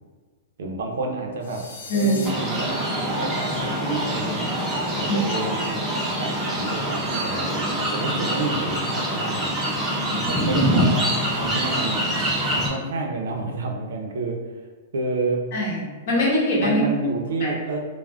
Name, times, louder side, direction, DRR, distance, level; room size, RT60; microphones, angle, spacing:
voice 1, 0.6-1.6 1.9-4.5 5.0-5.8 6.2-9.5 10.1-12.2 12.5-14.4 14.9-15.4 16.6-17.8, right 2 dB, 70° right, 2 dB, 0.5 m, -29 dB
sound 1, 1.4-2.3, left 4 dB, 70° left, 0.5 m, -38 dB
sound 2, 2.2-12.7, equal, 10° right, 0.3 m, -25 dB
voice 2, 15.5-16.8 17.4-17.5, left 1 dB, 40° left, -4 dB, 0.8 m, -23 dB
2.3 x 2.0 x 3.3 m, 1.4 s
supercardioid pair, 180°, 0 cm